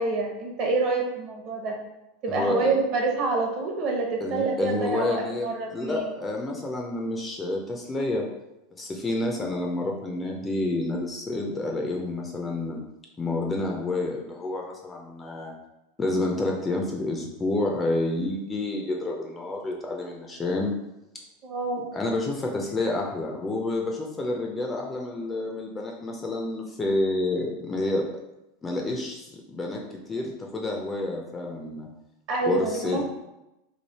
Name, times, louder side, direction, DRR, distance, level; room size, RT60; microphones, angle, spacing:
voice 1, 0.0-1.7 2.2-6.1 21.4-21.9 32.3-33.0, right 3 dB, 45° right, 1 dB, 0.8 m, -27 dB
voice 2, 2.3-2.7 4.2-5.5 5.7-8.3 8.8-12.8 13.2-15.5 16.0-20.7 21.9-28.1 28.6-31.9 32.4-33.0, left 2 dB, 15° left, 0 dB, 0.4 m, -29 dB
3.1 x 2.5 x 4.1 m, 0.92 s
supercardioid pair, 155°, 0 cm